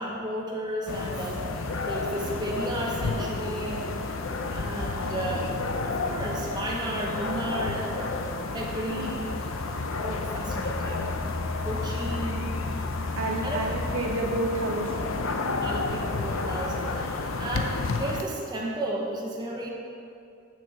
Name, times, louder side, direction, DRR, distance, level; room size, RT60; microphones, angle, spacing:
voice 1, 0.0-4.2 4.5-5.5 5.8-8.2 8.5-9.5 10.0-11.1 11.6-12.6 13.4-13.6 15.6-19.7, right 1 dB, 20° right, -2 dB, 1.0 m, -33 dB
sound 1, 0.9-18.2, left 3 dB, 75° left, 0.7 m, -31 dB
voice 2, 2.1-2.5 8.9-9.2 13.1-15.4, right 1 dB, 85° right, 0 dB, 1.4 m, -31 dB
sound 2, 9.3-14.3, left 2 dB, 20° left, 0.3 m, -35 dB
7.5 x 6.0 x 7.6 m, 2.5 s
head